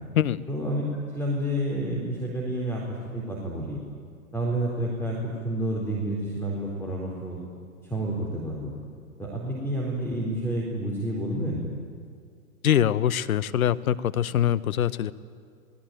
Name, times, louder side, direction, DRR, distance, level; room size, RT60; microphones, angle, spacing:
voice 1, 0.5-0.8 1.1-2.8 3.1-3.8 4.3-7.4 7.8-8.7 9.2-11.6, right 1 dB, 5° left, -3 dB, 3.9 m, -29 dB
voice 2, 12.6-15.1, left 10 dB, 70° left, 15 dB, 1.1 m, -23 dB
27.0 x 19.5 x 9.4 m, 2.1 s
hypercardioid pair, 130°, 43 cm